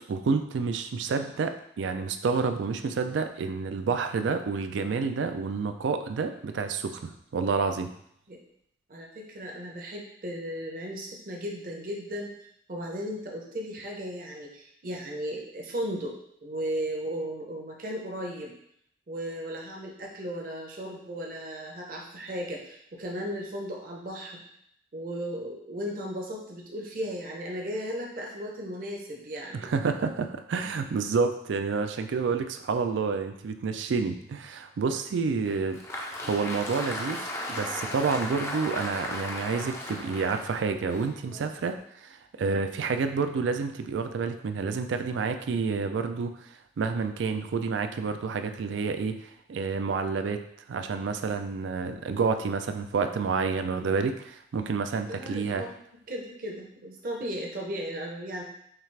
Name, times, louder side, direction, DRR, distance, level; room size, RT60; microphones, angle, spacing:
voice 1, 0.0-7.9 29.5-35.8 36.2-37.2 37.5-50.4 50.7-55.6, right 4 dB, 90° right, 8 dB, 0.4 m, -29 dB
voice 2, 8.9-12.3 12.7-18.5 19.1-24.4 24.9-29.7 55.0-55.7 56.1-58.4, equal, 50° right, -1 dB, 0.7 m, -36 dB
Applause, 35.5-41.8, left 1 dB, 15° left, 0.4 m, -36 dB
5.7 x 2.4 x 3.3 m, 0.72 s
head